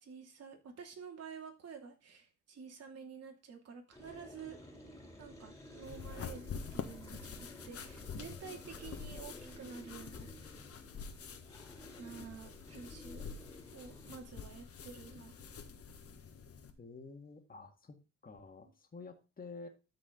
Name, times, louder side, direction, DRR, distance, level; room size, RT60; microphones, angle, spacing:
voice 1, 0.0-4.6 5.2-10.7 12.0-13.3 13.7-15.4 18.6-18.7, right 6 dB, 55° right, 2 dB, 2.7 m, -50 dB
sound 1, 3.9-16.8, left 1 dB, 10° left, 3.0 m, -54 dB
sound 2, 5.8-16.7, left 6 dB, 50° left, 1.5 m, -47 dB
voice 2, 16.8-18.0 18.2-19.7, left 4 dB, 30° left, 4 dB, 1.9 m, -50 dB
13.0 x 5.0 x 3.8 m, 0.30 s
cardioid pair, 90°, 30 cm